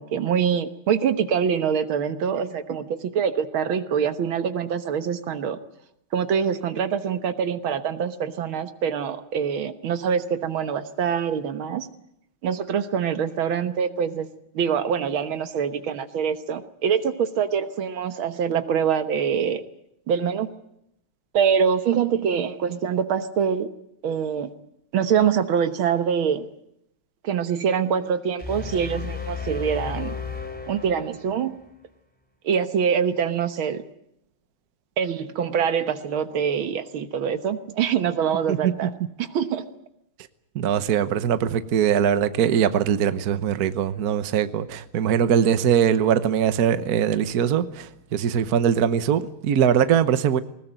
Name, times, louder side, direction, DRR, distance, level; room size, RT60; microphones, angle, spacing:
voice 1, 0.0-5.6 6.1-11.9 12.4-14.3 14.5-19.6 20.1-20.5 21.3-23.7 24.0-24.5 24.9-26.5 27.2-30.2 30.7-31.6 32.4-33.8 35.0-38.9 39.2-39.6, right 7 dB, 80° right, 2.0 m, -24 dB
sound 1, 28.4-31.6, left 6 dB, 5° left, 3.0 m, -33 dB
voice 2, 40.5-50.4, right 8 dB, 55° right, 1.4 m, -21 dB
20.0 x 20.0 x 9.1 m
omnidirectional pair, 2.2 m